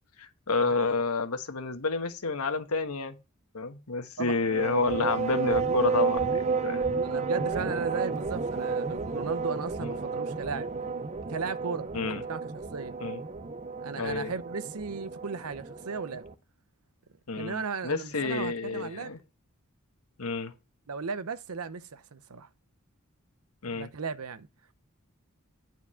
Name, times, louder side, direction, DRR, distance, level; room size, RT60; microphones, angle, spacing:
voice 1, 0.2-3.2 3.5-7.0 9.8-9.9 11.9-12.2 13.0-13.2 14.0-14.3 17.3-19.2 20.2-20.5 23.6-23.9, left 3 dB, 80° left, 1.3 m, -30 dB
sound 1, 4.4-16.3, right 4 dB, 30° right, 0.7 m, -31 dB
voice 2, 7.0-10.9 11.3-12.0 12.3-13.0 13.8-16.3 17.3-19.1 20.9-22.5 23.7-24.5, right 5 dB, 80° right, 0.7 m, -36 dB
9.6 x 4.7 x 5.6 m
head